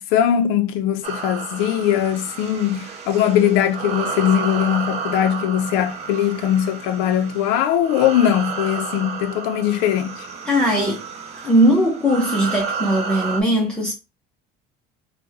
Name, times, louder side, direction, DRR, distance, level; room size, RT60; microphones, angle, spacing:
voice 1, 0.0-10.3, left 10 dB, 80° left, 0.4 m, -20 dB
sound 1, 1.0-13.4, right 5 dB, 40° right, 0.5 m, -31 dB
voice 2, 10.5-11.0 11.4-13.9, equal, 5° left, 0.6 m, -19 dB
3.0 x 2.1 x 3.3 m
cardioid pair, 155°, 17 cm